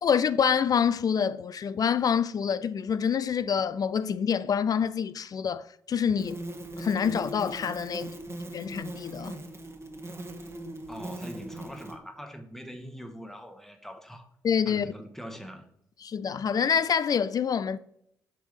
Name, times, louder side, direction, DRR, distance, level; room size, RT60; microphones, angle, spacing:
voice 1, 0.0-6.4 6.8-8.1 8.5-9.4 14.4-14.9 16.0-17.8, left 7 dB, 50° left, 0.4 m, -26 dB
sound 1, 6.2-12.0, right 1 dB, 35° right, 1.2 m, -39 dB
voice 2, 10.9-14.3 14.6-15.7, equal, 5° left, 1.2 m, -42 dB
6.5 x 3.5 x 5.0 m
hypercardioid pair, 40°, 8 cm